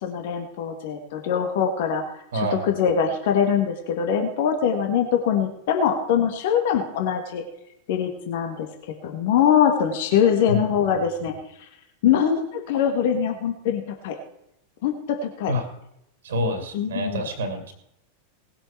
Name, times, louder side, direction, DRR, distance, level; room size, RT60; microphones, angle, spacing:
voice 1, 0.0-2.0 2.3-7.4 7.9-8.7 9.0-11.3 12.0-14.2 14.8-15.5 16.7-17.3, left 8 dB, 50° left, 4 dB, 1.9 m, -23 dB
voice 2, 2.3-2.7 10.5-11.3 15.5-15.7 16.2-17.7, equal, 60° right, 7 dB, 2.4 m, -28 dB
19.5 x 7.7 x 4.7 m, 0.79 s
figure-of-eight pair, 90°, 0 cm